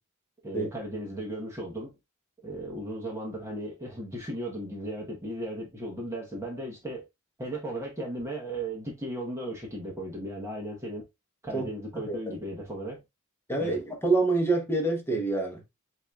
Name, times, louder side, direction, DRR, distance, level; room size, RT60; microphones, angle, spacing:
voice 1, 0.4-1.9 2.4-7.1 7.4-11.1 11.4-13.0 13.6-13.8, right 1 dB, 15° right, 1.0 m, -36 dB
voice 2, 11.9-12.3 13.5-15.6, right 2 dB, 10° left, 1.1 m, -27 dB
7.9 x 2.7 x 2.3 m
head